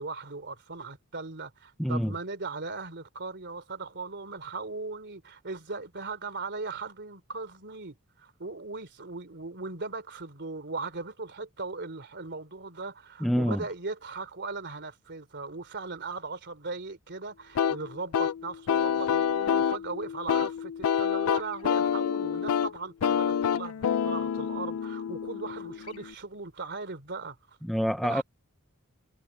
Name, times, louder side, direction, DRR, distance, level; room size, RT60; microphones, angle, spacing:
voice 1, 0.0-27.4 28.0-28.2, right 3 dB, 50° right, 3.4 m, -38 dB
voice 2, 1.8-2.1 13.2-13.6 27.6-28.2, equal, ahead, 0.5 m, -26 dB
sound 1, 17.6-26.1, left 8 dB, 70° left, 0.4 m, -28 dB
head